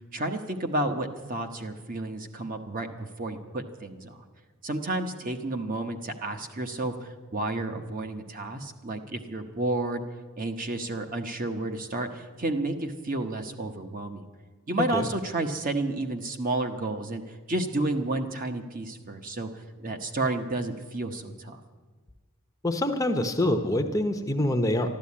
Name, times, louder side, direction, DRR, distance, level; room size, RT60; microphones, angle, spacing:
voice 1, 0.1-4.2 4.6-10.0 10.4-14.3 14.7-17.2 17.5-19.5 19.8-21.6, right 2 dB, 40° right, 5 dB, 1.0 m, -31 dB
voice 2, 22.6-24.9, left 1 dB, 15° left, 5 dB, 0.7 m, -25 dB
13.0 x 12.0 x 8.5 m, 1.4 s
head